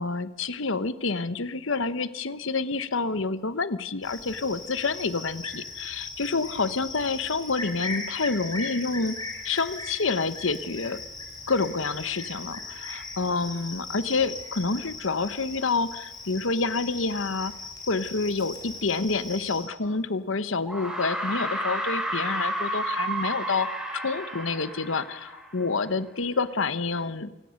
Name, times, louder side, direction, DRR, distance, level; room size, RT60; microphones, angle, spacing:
voice 1, 0.0-9.2 9.4-11.0 11.5-17.5 17.9-23.7 23.9-27.3, left 4 dB, 65° left, 14 dB, 1.1 m, -28 dB
Cricket, 4.0-19.6, left 3 dB, 20° left, 4.2 m, -39 dB
sound 1, 19.8-19.9 20.7-25.9, right 1 dB, 5° right, 5.1 m, -31 dB
27.5 x 18.0 x 6.5 m, 1.0 s
head